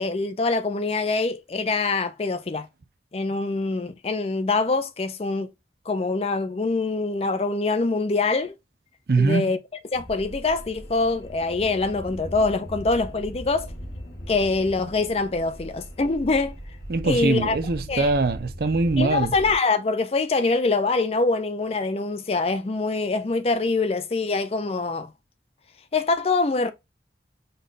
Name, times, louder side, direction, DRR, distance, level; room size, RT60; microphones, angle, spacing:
voice 1, 0.0-2.7 3.1-5.5 5.9-8.5 9.2-9.6 9.9-13.7 14.3-16.6 17.0-17.6 17.9-18.1 19.0-25.1 25.9-26.7, left 3 dB, 35° left, 0.4 m, -24 dB
voice 2, 9.1-9.5 16.9-19.3, right 3 dB, 55° right, 0.5 m, -22 dB
sound 1, 9.9-19.5, equal, 85° left, 1.5 m, -39 dB
5.4 x 2.3 x 3.9 m
head